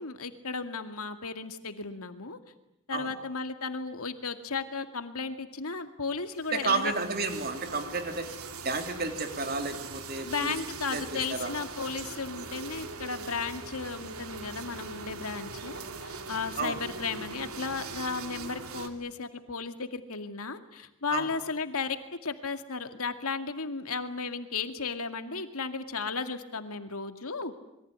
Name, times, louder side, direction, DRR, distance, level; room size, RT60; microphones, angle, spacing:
voice 1, 0.0-2.4 2.9-6.9 10.2-27.5, left 4 dB, 80° left, 8 dB, 2.3 m, -35 dB
sound 1, 6.3-18.9, right 4 dB, 80° right, 2.7 m, -41 dB
voice 2, 6.5-8.3 8.6-10.5 10.9-11.5 16.6-16.8 21.1-21.3, right 3 dB, 45° right, 6 dB, 3.3 m, -31 dB
27.0 x 23.0 x 9.6 m, 0.83 s
head